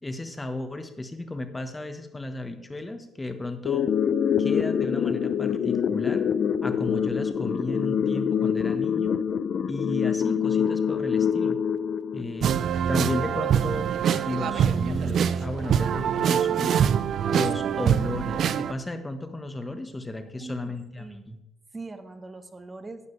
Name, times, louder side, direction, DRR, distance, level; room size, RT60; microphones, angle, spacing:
voice 1, 0.0-3.9 4.4-6.2 6.6-9.2 9.7-11.6 12.1-12.6 12.9-13.9 14.2-21.4, left 2 dB, 15° left, 7 dB, 1.3 m, -34 dB
sound 1, 3.7-12.7, left 7 dB, 60° left, 0.6 m, -25 dB
sound 2, 12.4-18.7, right 8 dB, 65° right, 0.5 m, -24 dB
voice 2, 20.4-21.2 21.7-23.0, right 3 dB, 20° right, 9 dB, 1.1 m, -41 dB
12.5 x 9.3 x 3.3 m, 0.92 s
cardioid pair, 95°, 0 cm